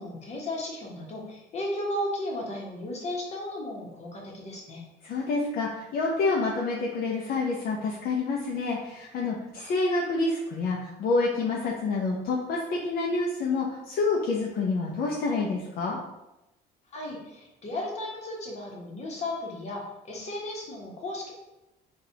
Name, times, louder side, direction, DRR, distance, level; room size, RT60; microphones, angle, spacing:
voice 1, 0.0-4.9 16.9-21.3, left 1 dB, 40° left, -2 dB, 1.1 m, -35 dB
voice 2, 5.0-16.0, left 3 dB, 65° left, -3 dB, 0.6 m, -28 dB
3.9 x 2.4 x 2.8 m, 0.94 s
cardioid pair, 110°, 17 cm